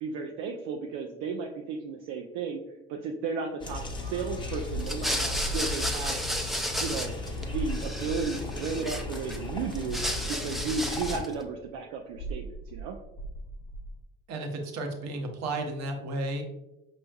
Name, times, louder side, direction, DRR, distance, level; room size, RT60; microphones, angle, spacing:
voice 1, 0.0-2.6 2.9-6.2 6.7-7.1 7.4-10.0 10.3-13.0, right 5 dB, 80° right, 2 dB, 0.5 m, -34 dB
sound 1, 3.6-11.2, left 3 dB, 15° left, 0.8 m, -37 dB
sound 2, 4.5-7.1 7.5-9.3 9.9-14.0, right 1 dB, 70° left, 0.5 m, -39 dB
sound 3, 4.8-7.4 7.7-9.4 9.7-11.3, equal, ahead, 0.4 m, -33 dB
voice 2, 14.3-16.4, right 2 dB, 60° right, 4 dB, 0.9 m, -33 dB
5.0 x 3.1 x 2.3 m, 0.92 s
supercardioid pair, 75°, 30 cm